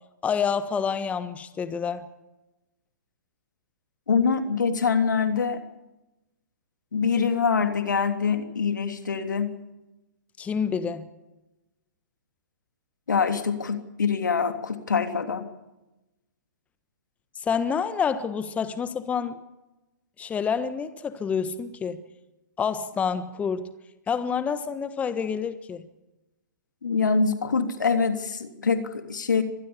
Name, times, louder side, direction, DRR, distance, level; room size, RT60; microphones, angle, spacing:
voice 1, 0.2-2.1 10.4-11.0 17.3-19.4 20.2-22.0 22.6-23.7 24.1-25.8, left 6 dB, 15° left, 12 dB, 1.3 m, -28 dB
voice 2, 4.1-5.6 6.9-9.6 13.1-15.5 26.8-29.4, left 5 dB, 75° left, 8 dB, 3.2 m, -24 dB
25.0 x 20.0 x 7.2 m, 1.0 s
figure-of-eight pair, 125°, 10 cm